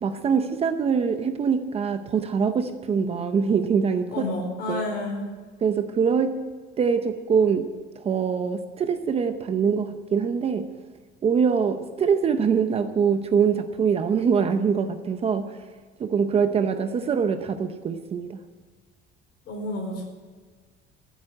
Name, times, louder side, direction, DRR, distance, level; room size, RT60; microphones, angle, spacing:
voice 1, 0.0-4.3 4.7-4.8 5.6-6.4 6.8-10.7 11.2-15.6 16.0-18.4, right 6 dB, 30° right, 8 dB, 0.7 m, -24 dB
voice 2, 4.1-5.2 19.4-20.1, left 2 dB, 55° left, 1 dB, 4.6 m, -30 dB
14.5 x 8.2 x 8.9 m, 1.4 s
cardioid pair, 175°, 21 cm